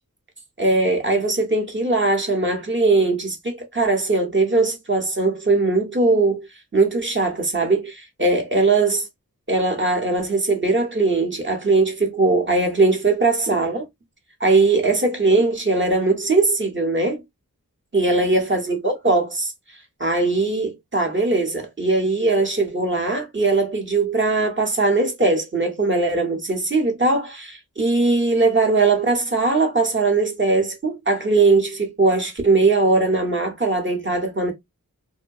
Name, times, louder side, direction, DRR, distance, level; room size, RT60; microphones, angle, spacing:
voice 1, 0.6-6.5 6.7-9.1 9.5-13.9 14.4-17.2 17.9-19.5 20.0-34.5, right 3 dB, 35° right, 0.8 m, -20 dB
2.6 x 2.1 x 2.2 m
wide cardioid pair, 60°, 35 cm